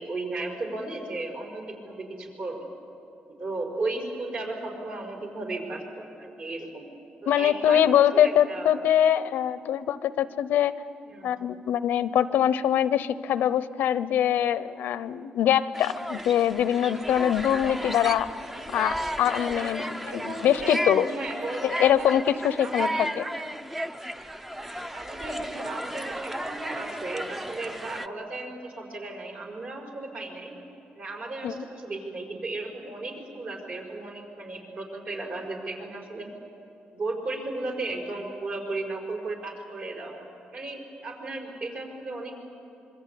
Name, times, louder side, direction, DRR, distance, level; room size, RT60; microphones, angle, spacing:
voice 1, 0.0-2.7 3.3-6.9 7.2-8.7 11.1-11.4 20.1-22.1 22.6-23.2 24.9-30.5 31.0-36.3 36.9-42.4, right 2 dB, 50° right, 2 dB, 5.2 m, -35 dB
voice 2, 7.3-10.7 11.2-18.3 18.7-21.1 21.6-23.2 31.4-31.7, left 10 dB, 85° left, 14 dB, 0.7 m, -23 dB
sound 1, 15.7-28.1, equal, 5° right, 0.7 m, -34 dB
26.0 x 23.5 x 8.5 m, 2.8 s
cardioid pair, 135°, 3 cm